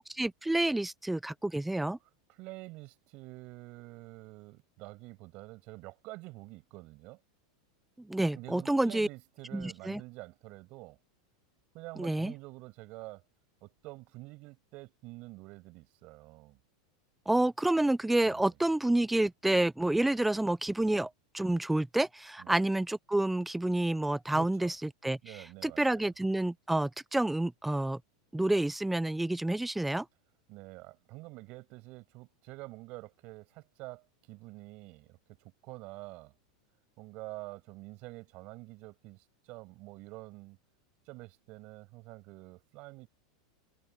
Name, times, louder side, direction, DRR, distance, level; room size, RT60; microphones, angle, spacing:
voice 1, 0.1-2.0 8.0-9.1 9.5-10.0 12.0-12.3 17.3-24.7 25.0-25.2 25.6-28.0 28.3-30.1, right 1 dB, 5° right, 0.5 m, -29 dB
voice 2, 2.0-7.2 8.3-11.0 11.7-13.2 13.6-16.6 18.2-18.5 22.4-22.6 24.3-24.8 25.2-26.1 30.5-36.3 37.0-40.6 41.1-43.1, right 22 dB, 45° right, 6.8 m, -47 dB
supercardioid pair, 145°, 3 cm